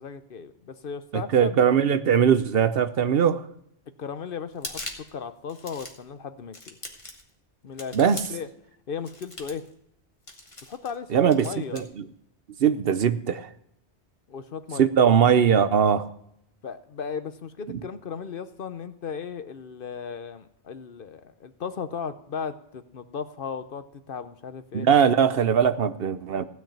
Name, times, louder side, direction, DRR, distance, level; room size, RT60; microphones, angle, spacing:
voice 1, 0.0-1.6 4.0-4.8 5.1-6.8 7.6-8.5 8.9-9.7 10.7-11.8 14.3-14.9 16.6-24.9, left 6 dB, 55° left, 11 dB, 0.9 m, -36 dB
voice 2, 1.1-3.4 7.9-8.2 11.1-12.0 12.6-13.5 14.8-16.1 24.7-26.5, right 7 dB, 60° right, 12 dB, 0.8 m, -20 dB
sound 1, 4.5-5.1 5.5-6.1 6.5-7.3 7.8-8.5 9.0-9.7 10.3-11.0 11.3-11.8, left 2 dB, 30° left, 1.8 m, -40 dB
16.0 x 5.9 x 8.7 m, 0.76 s
omnidirectional pair, 1.1 m